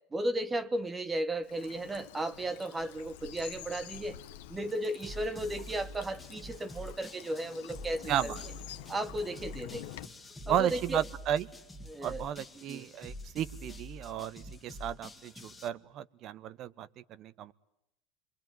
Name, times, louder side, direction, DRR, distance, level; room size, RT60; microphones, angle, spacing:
voice 1, 0.1-4.2 4.5-8.3 8.9-9.9 10.5-11.0 11.9-12.2 12.7-12.9, right 1 dB, 15° right, 1.1 m, -35 dB
Bird vocalization bird call bird song / Stream, 1.4-10.1, left 13 dB, 80° left, 1.3 m, -48 dB
sound 1, 5.0-15.7, left 1 dB, 10° left, 1.9 m, -47 dB
voice 2, 8.1-8.4 10.5-11.5 12.0-17.5, right 10 dB, 45° right, 1.0 m, -34 dB
27.0 x 23.5 x 9.3 m
supercardioid pair, 115°, 0 cm